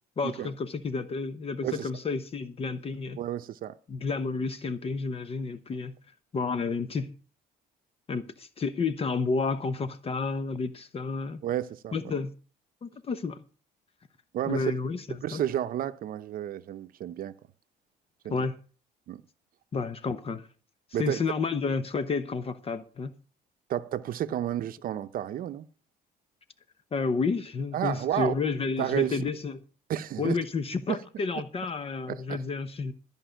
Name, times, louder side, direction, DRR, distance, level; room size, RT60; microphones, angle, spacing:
voice 1, 0.2-3.2 3.9-5.9 6.3-7.2 8.1-11.4 11.9-12.3 12.8-13.4 14.5-15.4 18.3-18.6 19.7-20.5 21.0-23.1 26.9-29.6 30.2-32.9, left 4 dB, 35° left, 0.9 m, -31 dB
voice 2, 3.2-3.7 11.4-12.1 14.3-14.7 15.2-17.4 18.2-18.5 19.1-19.2 20.9-21.2 23.7-25.7 27.7-28.3 28.8-29.2 29.9-30.4 30.9-31.0 32.1-32.4, right 11 dB, 60° right, 0.7 m, -31 dB
13.5 x 5.4 x 9.1 m
cardioid pair, 110°, 17 cm